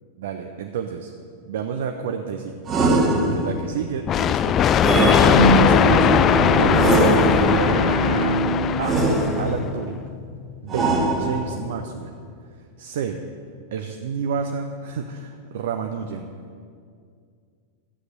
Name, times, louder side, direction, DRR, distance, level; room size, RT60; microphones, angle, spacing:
voice 1, 0.2-1.1 1.5-2.6 3.3-4.6 5.0-6.3 6.5-8.1 8.8-9.0 9.4-10.0 10.6-12.1 12.8-13.2 13.7-16.3, right 7 dB, 55° right, 5 dB, 0.6 m, -30 dB
sound 1, 2.7-3.7 4.8-5.9 6.7-7.7 8.8-9.7 10.7-11.7, right 2 dB, 20° right, 1.6 m, -21 dB
sound 2, 4.1-9.7, left 9 dB, 30° left, 0.3 m, -19 dB
Bowed string instrument, 5.3-10.7, right 2 dB, 90° right, 0.9 m, -24 dB
12.5 x 8.0 x 6.5 m, 2.2 s
figure-of-eight pair, 90°, 0 cm